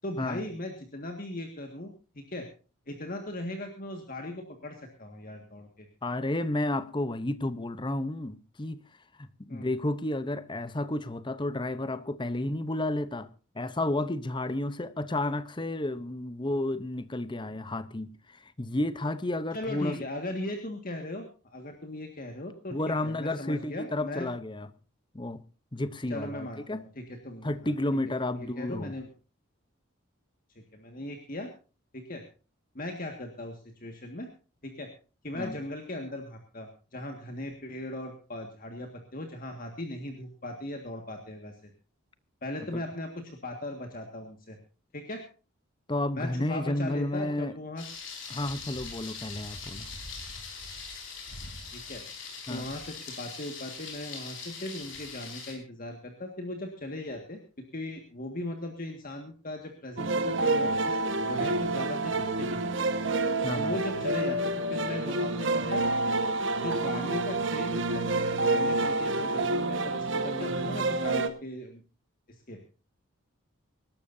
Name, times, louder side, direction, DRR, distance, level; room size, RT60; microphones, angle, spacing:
voice 1, 0.0-2.5 2.9-5.9 9.5-9.7 19.5-24.3 26.1-27.7 28.3-29.1 30.7-31.5 31.9-32.2 32.8-34.3 34.6-34.9 35.2-41.7 42.4-44.6 44.9-45.2 46.1-47.9 51.7-52.0 52.5-57.4 57.7-62.8 63.6-65.8 66.6-71.8 72.3-72.7, left 1 dB, 40° left, 1.8 m, -38 dB
voice 2, 6.0-8.8 9.2-13.3 13.5-20.0 22.7-24.7 25.1-25.4 25.7-26.8 27.4-28.9 35.3-35.5 42.7-42.8 45.9-47.5 48.3-49.9 52.5-52.7 63.4-63.8, left 1 dB, 20° left, 0.8 m, -31 dB
Thunder, 47.8-55.5, left 4 dB, 60° left, 4.7 m, -41 dB
sound 1, 60.0-71.3, right 2 dB, 60° right, 1.4 m, -28 dB
25.0 x 12.5 x 2.7 m
head